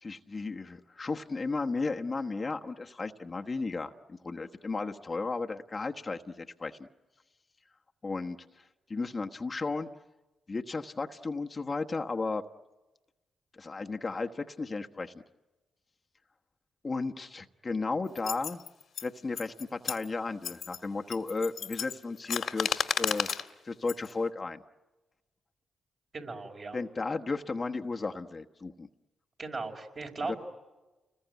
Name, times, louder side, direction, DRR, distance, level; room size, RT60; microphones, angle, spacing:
voice 1, 0.0-6.9 8.0-8.6 8.9-9.9 10.5-12.4 13.5-15.1 16.8-18.6 19.0-23.3 23.6-24.6 26.7-28.9 30.3-30.4, left 3 dB, 40° left, 4 dB, 1.2 m, -34 dB
sound 1, 18.2-19.1 19.4-20.1 20.4-20.8 21.1-23.5 23.9-24.1, left 7 dB, 70° left, 1.9 m, -32 dB
voice 2, 26.1-26.8 29.4-30.4, right 3 dB, 50° right, 2 dB, 4.8 m, -37 dB
29.5 x 21.0 x 9.3 m, 1.1 s
supercardioid pair, 50°, 0 cm